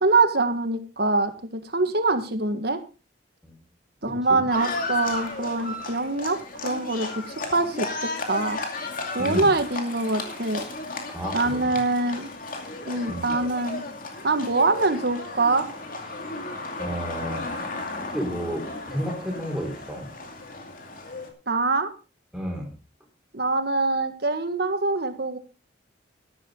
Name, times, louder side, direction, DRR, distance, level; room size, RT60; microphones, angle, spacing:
voice 1, 0.0-2.8 4.0-8.6 9.1-10.6 11.3-12.3 12.8-13.8 14.2-15.6 21.5-21.9 23.3-25.4, right 3 dB, 55° right, 9 dB, 1.7 m, -24 dB
Livestock farm animals working animals, 4.5-21.3, left 3 dB, 45° left, 2.5 m, -34 dB
voice 2, 9.2-9.5 11.1-11.8 13.1-13.4 16.8-17.5 18.1-20.1 22.3-22.8, equal, ahead, 0 dB, 4.6 m, -31 dB
13.5 x 12.5 x 3.9 m, 0.32 s
head